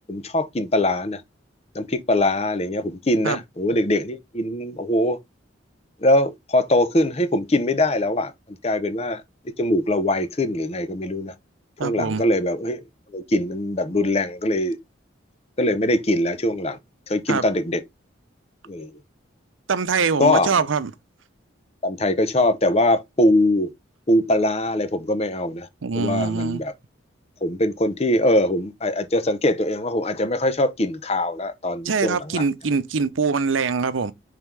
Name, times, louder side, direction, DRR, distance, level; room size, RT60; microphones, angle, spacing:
voice 1, 0.1-1.2 1.7-5.2 6.0-8.3 8.6-11.3 11.8-12.8 13.1-14.8 15.6-16.8 17.1-17.8 18.7-18.9 20.2-20.5 21.8-23.7 24.1-25.7 25.9-26.7 27.4-32.4, left 1 dB, 30° left, 0.7 m, -22 dB
voice 2, 11.8-12.2 17.3-17.4 19.7-20.9 25.8-26.6 31.8-34.1, right 5 dB, 85° right, 0.7 m, -23 dB
5.5 x 3.7 x 4.6 m
head